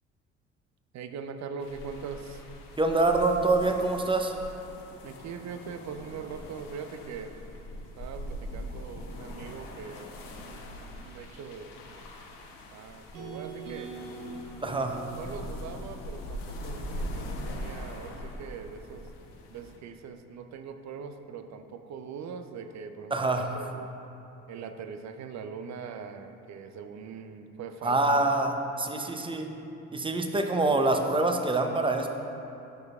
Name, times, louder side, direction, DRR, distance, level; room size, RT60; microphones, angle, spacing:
voice 1, 0.9-2.4 5.0-7.4 8.0-12.1 12.7-13.9 14.6-19.1 19.5-23.9 24.5-28.3, right 6 dB, 45° right, 8 dB, 0.6 m, -42 dB
sound 1, 1.6-19.8, equal, 60° left, 1.0 m, -42 dB
voice 2, 2.8-4.4 14.6-15.0 23.1-23.5 27.8-29.5 29.9-32.1, right 2 dB, 15° right, 4 dB, 0.7 m, -25 dB
sound 2, 13.1-17.3, right 3 dB, 75° right, 1.2 m, -43 dB
11.5 x 6.3 x 2.4 m, 2.8 s
hypercardioid pair, 50°, 38 cm